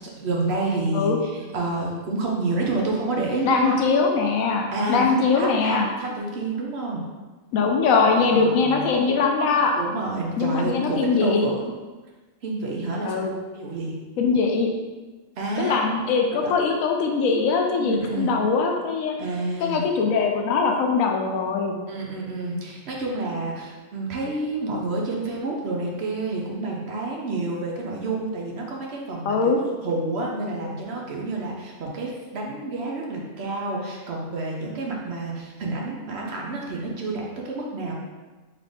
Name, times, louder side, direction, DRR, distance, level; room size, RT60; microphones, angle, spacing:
voice 1, 0.0-3.8 4.7-7.1 8.3-8.9 9.8-11.7 12.4-13.2 13.5-14.1 15.4-15.8 16.3-16.5 17.7-18.4 19.2-19.8 21.9-29.5 29.8-37.9, right 2 dB, 60° right, -1 dB, 0.9 m, -29 dB
voice 2, 3.4-5.9 7.5-9.7 10.4-11.5 13.0-13.3 14.2-14.7 15.6-19.1 19.6-21.7 29.3-29.6, left 4 dB, 90° left, 2 dB, 1.0 m, -21 dB
3.9 x 3.3 x 3.4 m, 1.3 s
omnidirectional pair, 1.4 m